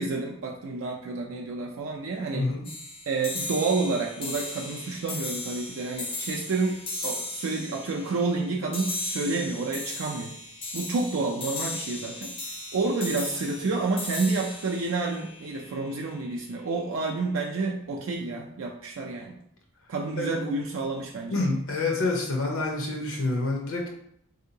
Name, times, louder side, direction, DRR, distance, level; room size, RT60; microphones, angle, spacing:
voice 1, 0.0-2.5 3.1-10.3 10.7-12.3 12.7-19.4 19.9-21.4, right 3 dB, 65° right, 0 dB, 0.4 m, -29 dB
voice 2, 2.3-2.6 20.2-20.3 21.3-23.9, left 2 dB, 75° left, 0 dB, 0.7 m, -27 dB
sound 1, 2.6-16.1, left 2 dB, 25° left, 0.5 m, -37 dB
3.6 x 2.7 x 2.7 m, 0.71 s
head